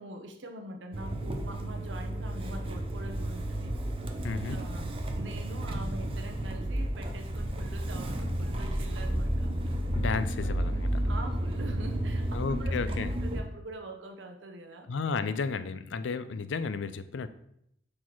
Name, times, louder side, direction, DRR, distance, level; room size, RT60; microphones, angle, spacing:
voice 1, 0.0-3.7 4.5-4.9 5.1-9.8 10.3-10.5 11.0-14.9, right 1 dB, 80° right, 4 dB, 0.8 m, -44 dB
Motor vehicle (road) / Engine starting, 0.9-13.4, right 1 dB, 30° right, 0.7 m, -32 dB
voice 2, 4.2-4.6 9.9-11.0 12.3-13.1 14.9-17.3, left 4 dB, 85° left, 12 dB, 0.4 m, -32 dB
6.2 x 4.1 x 4.5 m, 0.75 s
head